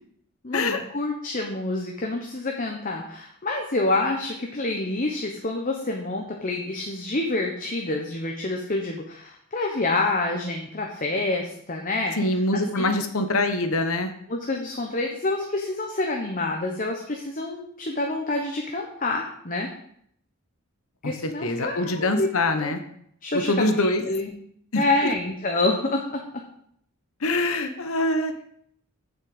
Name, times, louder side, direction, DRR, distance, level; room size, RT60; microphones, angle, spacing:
voice 1, 0.4-12.2 12.5-12.9 14.3-19.7 21.0-22.3 22.6-22.7 23.2-24.3 24.7-26.2 27.5-27.6, left 2 dB, 35° left, 1 dB, 1.1 m, -27 dB
voice 2, 12.2-14.1 21.0-21.1 21.4-22.8 23.3-24.0 24.7-25.1 27.2-28.5, left 2 dB, 65° left, 7 dB, 1.1 m, -24 dB
7.4 x 6.4 x 8.0 m, 0.68 s
head